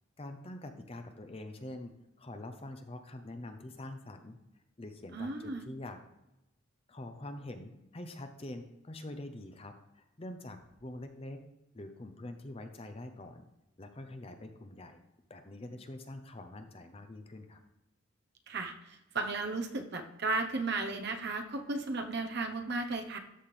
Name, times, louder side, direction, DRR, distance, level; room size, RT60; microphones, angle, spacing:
voice 1, 0.2-1.9 2.2-4.4 4.8-6.0 6.9-11.4 11.7-13.4 13.8-15.0 15.3-17.6, left 1 dB, 25° left, 7 dB, 0.6 m, -45 dB
voice 2, 5.1-5.7 18.5-23.2, right 3 dB, 50° right, 5 dB, 0.9 m, -35 dB
13.0 x 4.3 x 3.3 m, 0.92 s
head